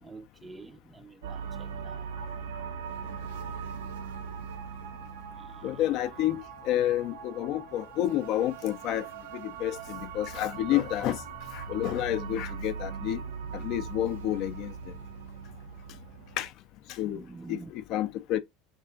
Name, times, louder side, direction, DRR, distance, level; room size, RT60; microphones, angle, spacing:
voice 1, 0.0-2.1 5.3-5.7 17.0-17.7, right 3 dB, 15° right, 0.4 m, -47 dB
sound 1, 1.2-16.5, right 6 dB, 85° right, 0.4 m, -40 dB
voice 2, 5.6-9.1 9.3-11.2 11.5-13.2 13.5-14.7 16.4-16.5 16.9-17.2 17.5-18.4, left 13 dB, 60° left, 0.4 m, -29 dB
2.8 x 2.4 x 2.3 m
supercardioid pair, 100°, 0 cm